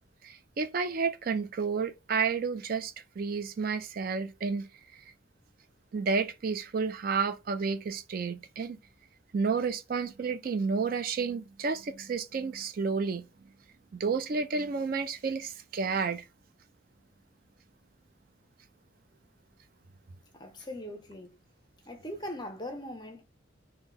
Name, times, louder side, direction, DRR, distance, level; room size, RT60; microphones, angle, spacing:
voice 1, 0.2-4.7 5.9-8.8 9.3-13.2 13.9-16.2, right 5 dB, 45° right, 0.3 m, -31 dB
voice 2, 20.3-21.4 21.8-23.2, left 1 dB, 20° left, 0.5 m, -40 dB
2.9 x 2.1 x 3.6 m
head